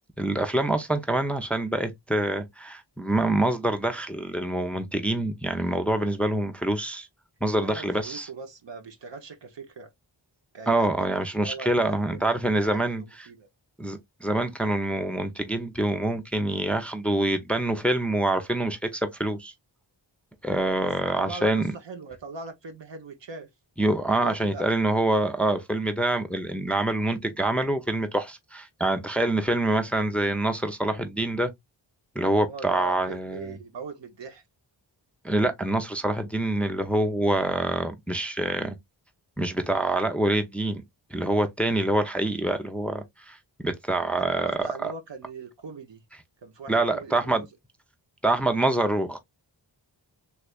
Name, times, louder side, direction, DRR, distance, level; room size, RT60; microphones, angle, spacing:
voice 1, 0.2-7.1 7.4-8.3 10.7-13.0 13.8-19.5 20.4-21.7 23.8-31.5 32.2-33.6 35.2-38.8 39.4-40.8 41.1-44.5 44.8-44.9 46.7-47.4 48.2-49.2, right 1 dB, 5° left, 0.6 m, -26 dB
voice 2, 7.6-9.9 10.5-12.3 12.5-13.5 20.5-23.5 24.1-24.6 32.4-34.4 43.9-46.0 46.4-47.5, right 4 dB, 70° right, 1.0 m, -40 dB
3.4 x 3.2 x 2.3 m
wide cardioid pair, 80°, 45 cm